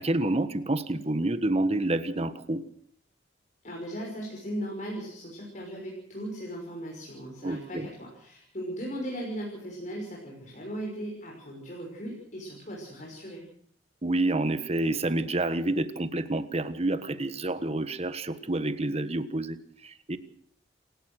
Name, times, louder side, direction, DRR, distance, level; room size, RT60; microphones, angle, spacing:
voice 1, 0.0-2.6 7.4-7.9 14.0-20.2, right 2 dB, 35° right, 12 dB, 1.4 m, -28 dB
voice 2, 3.6-13.4, equal, 45° left, -1 dB, 6.0 m, -38 dB
28.0 x 16.5 x 6.4 m, 0.63 s
head